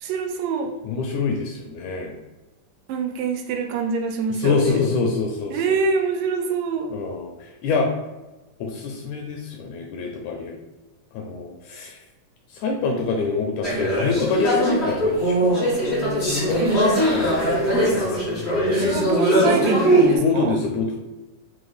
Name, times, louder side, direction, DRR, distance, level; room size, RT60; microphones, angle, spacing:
voice 1, 0.0-0.7 2.9-4.8 5.5-6.9 16.6-17.0 18.7-20.6, right 5 dB, 90° right, 3 dB, 2.2 m, -25 dB
voice 2, 0.8-2.2 4.4-5.6 6.9-7.3 7.6-7.9 8.6-10.6 11.1-12.0 12.5-15.7 16.3-16.6 17.0-17.5 20.2-21.0, left 4 dB, 80° left, 1 dB, 1.7 m, -25 dB
sound 1, 13.6-20.2, equal, 60° left, 0.7 m, -20 dB
5.8 x 2.1 x 3.3 m, 1.1 s
omnidirectional pair, 3.7 m